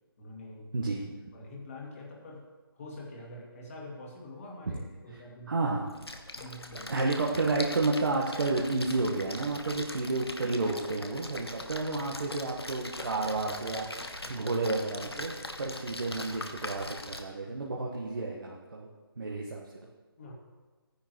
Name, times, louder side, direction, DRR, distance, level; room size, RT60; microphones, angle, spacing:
voice 1, 0.2-0.9 1.3-2.5 2.7-5.6 6.4-6.9 14.2-14.5 20.2-20.3, left 1 dB, 35° left, -1 dB, 2.3 m, -45 dB
voice 2, 0.7-1.0 4.7-4.8 5.5-5.9 6.9-18.9 19.2-19.6, right 3 dB, 60° right, -3 dB, 1.4 m, -31 dB
Splash splatter, 5.9-17.2, left 2 dB, 85° left, 1.2 m, -41 dB
15.0 x 10.0 x 3.1 m, 1.3 s
figure-of-eight pair, 150°, 13 cm